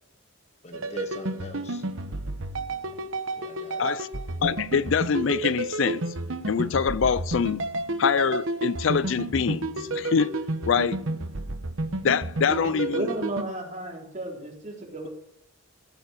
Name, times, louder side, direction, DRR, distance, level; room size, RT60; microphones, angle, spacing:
voice 1, 0.6-1.8 3.4-3.9, left 2 dB, 35° left, 1.1 m, -43 dB
sound 1, 0.7-13.4, right 2 dB, 75° right, 1.1 m, -31 dB
voice 2, 4.4-6.0 6.5-7.6 8.0-10.3 10.7-11.0 12.0-13.1, left 6 dB, 65° left, 0.4 m, -24 dB
voice 3, 12.5-15.1, right 2 dB, 35° right, 4.0 m, -33 dB
16.5 x 7.2 x 6.6 m
head